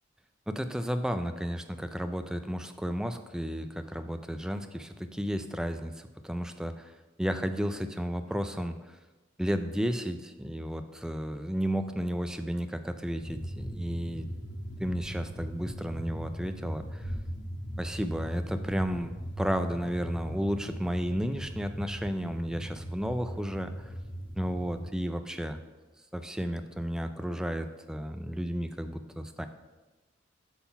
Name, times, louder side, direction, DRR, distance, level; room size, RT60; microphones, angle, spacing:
voice 1, 0.5-9.0 9.4-14.2 14.8-17.1 17.8-23.9 24.4-25.6 26.1-29.5, equal, 5° right, 8 dB, 0.3 m, -33 dB
sound 1, 13.2-24.9, equal, 60° left, 1.1 m, -39 dB
8.3 x 3.8 x 5.7 m, 1.2 s
head